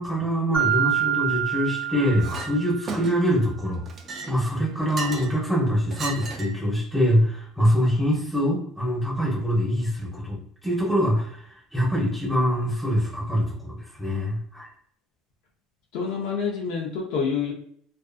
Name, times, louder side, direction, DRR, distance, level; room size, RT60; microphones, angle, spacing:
voice 1, 0.0-3.8 4.3-14.7, equal, ahead, -5 dB, 0.8 m, -24 dB
Mallet percussion, 0.5-3.1, right 10 dB, 60° right, 0.9 m, -26 dB
Chink clink, 2.2-2.5 2.9-3.4 3.9-5.4 5.9-6.6, right 4 dB, 25° right, 0.3 m, -35 dB
voice 2, 15.9-17.5, left 6 dB, 65° left, 0 dB, 0.5 m, -27 dB
2.5 x 2.5 x 2.4 m, 0.63 s
cardioid pair, 165°, 0 cm